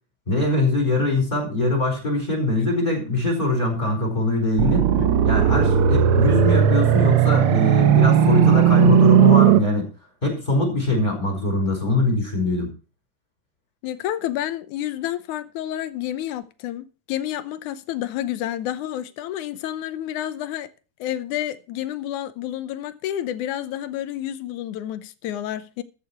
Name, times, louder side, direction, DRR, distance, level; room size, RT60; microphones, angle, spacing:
voice 1, 0.3-4.9 5.2-9.8 10.2-12.7, left 2 dB, 15° left, 4.8 m, -22 dB
sound 1, 4.6-9.6, right 9 dB, 70° right, 1.3 m, -16 dB
voice 2, 13.8-20.7 21.0-25.8, left 12 dB, 85° left, 2.3 m, -29 dB
14.0 x 6.7 x 5.9 m
omnidirectional pair, 3.4 m